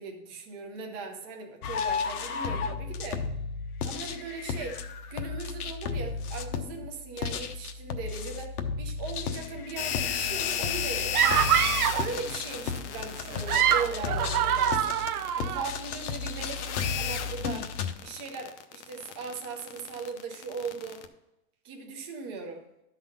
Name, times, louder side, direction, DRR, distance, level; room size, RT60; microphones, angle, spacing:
voice 1, 0.0-3.3 3.8-4.8 5.1-11.5 12.0-15.0 15.4-17.7 18.0-21.0 21.6-22.6, right 4 dB, 15° right, 2 dB, 0.6 m, -39 dB
sound 1, 1.6-17.9, left 5 dB, 70° left, 1.0 m, -34 dB
sound 2, 9.8-21.1, left 9 dB, 45° left, 0.7 m, -34 dB
sound 3, 11.1-12.1 13.3-15.7, right 10 dB, 65° right, 0.6 m, -25 dB
12.0 x 4.1 x 5.3 m, 0.87 s
hypercardioid pair, 160°, 47 cm